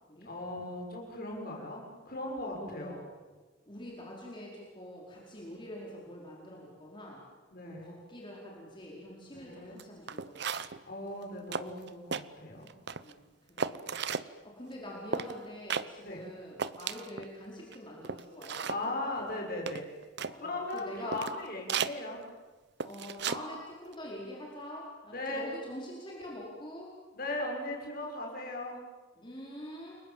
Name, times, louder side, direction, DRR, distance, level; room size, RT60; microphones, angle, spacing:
voice 1, 0.2-3.0 7.5-7.9 9.3-9.8 10.9-12.7 16.0-16.2 18.7-19.9 20.4-22.2 25.1-25.5 27.1-28.8, left 2 dB, 45° left, 0 dB, 6.6 m, -38 dB
voice 2, 2.5-3.0 3.7-7.2 7.6-10.4 13.0-14.0 14.4-18.9 20.2-21.2 22.8-26.9 29.2-30.0, left 1 dB, 25° left, -3 dB, 4.9 m, -45 dB
sound 1, 9.8-9.9 10.1-10.8 11.2-11.3 11.5-12.2 12.7-13.1 13.6-14.3 15.1-15.3 15.7-15.9 16.2-16.3 16.6-17.3 17.7-17.8 18.0-18.8 19.7-20.3 20.8-20.9 21.1-21.4 21.7-21.9 22.8-23.4 23.7-23.9, right 6 dB, 55° right, 0.8 m, -35 dB
29.5 x 22.5 x 7.7 m, 1.3 s
head